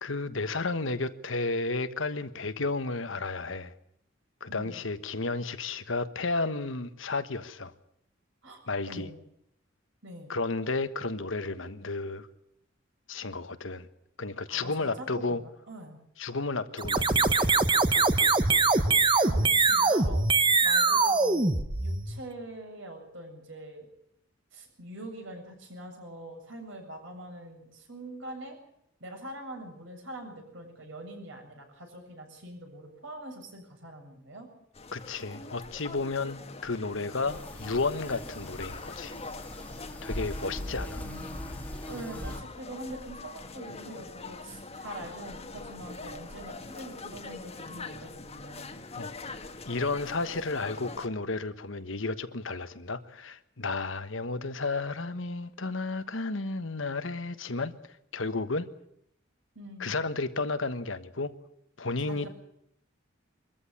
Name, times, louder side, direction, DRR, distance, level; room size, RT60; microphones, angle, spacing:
voice 1, 0.0-3.7 4.4-7.7 8.7-9.1 10.3-12.3 13.1-13.9 14.2-15.4 16.2-17.6 34.9-39.1 40.0-41.0 48.9-49.3 49.6-57.7 58.1-58.7 59.8-61.3 61.8-62.3, left 3 dB, 70° left, 1.3 m, -32 dB
voice 2, 4.5-4.8 8.4-8.6 8.9-9.2 10.0-10.3 14.5-16.0 19.2-20.3 20.6-23.9 24.5-28.6 29.0-34.5 40.5-41.4 41.9-48.8 59.5-60.0 62.0-62.3, right 1 dB, 65° right, 7.6 m, -44 dB
sound 1, 16.8-22.3, right 3 dB, 25° right, 1.1 m, -23 dB
sound 2, 34.7-51.1, left 3 dB, 30° left, 1.6 m, -44 dB
sound 3, 37.3-42.4, equal, 10° left, 1.7 m, -40 dB
23.5 x 14.5 x 9.9 m
head